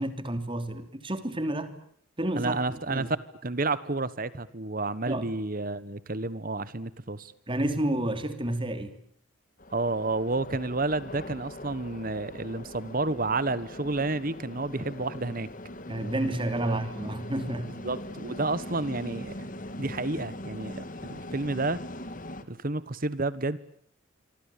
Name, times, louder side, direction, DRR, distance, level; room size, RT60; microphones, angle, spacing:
voice 1, 0.0-1.7 2.2-3.1 5.1-5.3 7.5-8.9 15.9-17.7, right 1 dB, 25° right, 10 dB, 3.0 m, -30 dB
voice 2, 2.3-3.1 3.4-7.3 9.7-15.5 16.5-16.8 17.8-19.5 19.8-21.8 22.5-23.6, right 3 dB, 45° right, 16 dB, 1.3 m, -30 dB
sound 1, 9.6-22.4, left 1 dB, 40° left, 2.4 m, -41 dB
26.0 x 25.0 x 8.6 m, 0.62 s
head